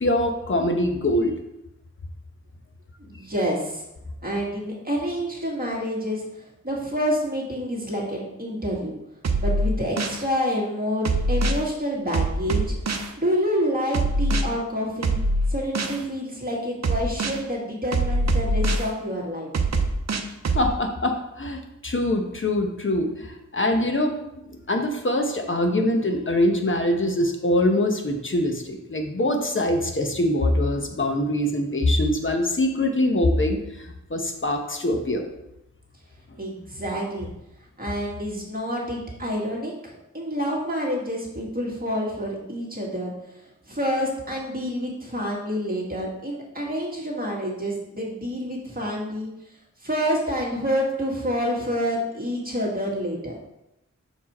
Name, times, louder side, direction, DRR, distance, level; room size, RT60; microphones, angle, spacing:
voice 1, 0.0-1.3 20.5-24.2 24.7-35.2, left 1 dB, 45° left, 4 dB, 1.0 m, -23 dB
voice 2, 3.0-3.8 4.2-8.9 9.4-15.2 15.5-19.5 36.4-37.3 37.8-43.1 43.7-49.3 49.8-53.3, equal, 30° right, -3 dB, 1.9 m, -28 dB
sound 1, 9.2-10.2 11.0-11.6 12.1-13.1 13.9-14.4 15.0-16.0 16.8-17.4 17.9-18.9 19.5-20.7, right 2 dB, 65° right, 0.7 m, -23 dB
6.0 x 4.7 x 4.3 m, 0.87 s
wide cardioid pair, 75°, 29 cm